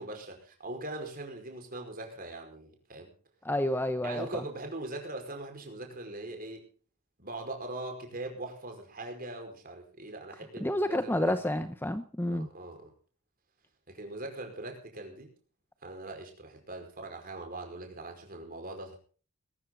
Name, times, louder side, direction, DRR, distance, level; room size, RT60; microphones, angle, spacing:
voice 1, 0.0-3.1 4.0-6.7 7.2-11.3 12.3-12.9 13.9-15.3 15.8-19.0, right 2 dB, 40° right, 3 dB, 5.0 m, -41 dB
voice 2, 3.4-4.3 10.6-12.5, left 1 dB, 10° left, 10 dB, 0.8 m, -29 dB
21.0 x 13.5 x 3.9 m, 0.41 s
head